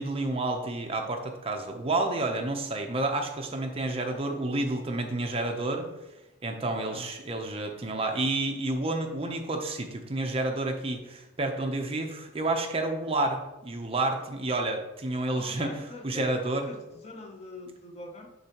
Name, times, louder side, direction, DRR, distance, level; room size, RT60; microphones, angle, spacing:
voice 1, 0.0-5.9 6.4-15.7 16.0-16.7, right 2 dB, 25° right, 4 dB, 0.6 m, -30 dB
voice 2, 15.3-16.2 16.6-18.3, left 1 dB, 30° left, 3 dB, 0.6 m, -43 dB
6.9 x 6.7 x 2.9 m, 0.99 s
head